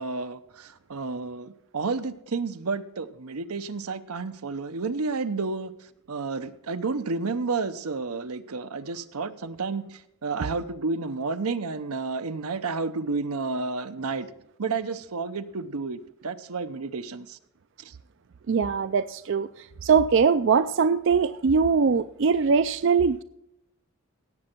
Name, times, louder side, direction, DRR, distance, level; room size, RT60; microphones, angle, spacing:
voice 1, 0.0-5.7 6.1-14.3 14.6-17.4 17.8-17.9, right 4 dB, 85° right, 0.8 m, -31 dB
voice 2, 18.5-23.2, right 5 dB, 55° right, 0.4 m, -22 dB
17.0 x 7.7 x 4.5 m
head